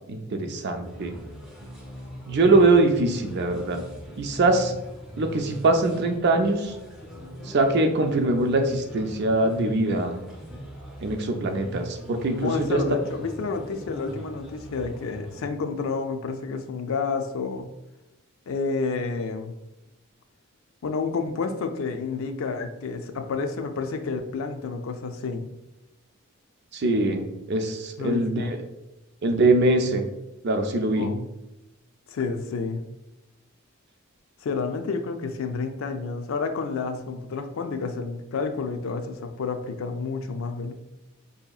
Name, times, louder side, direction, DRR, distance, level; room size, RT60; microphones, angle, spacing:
voice 1, 0.1-1.1 2.3-3.8 4.2-4.7 5.2-6.7 7.5-10.1 11.0-12.8 26.7-28.6 29.2-30.0 30.4-31.1, right 2 dB, 50° right, 5 dB, 0.4 m, -22 dB
sound 1, 0.8-15.5, equal, ahead, 0.6 m, -41 dB
voice 2, 12.4-17.7 18.5-19.5 20.8-25.4 28.0-28.5 31.0-31.2 32.1-32.8 34.4-40.7, left 4 dB, 70° left, 7 dB, 0.4 m, -30 dB
4.8 x 2.7 x 2.3 m, 0.94 s
head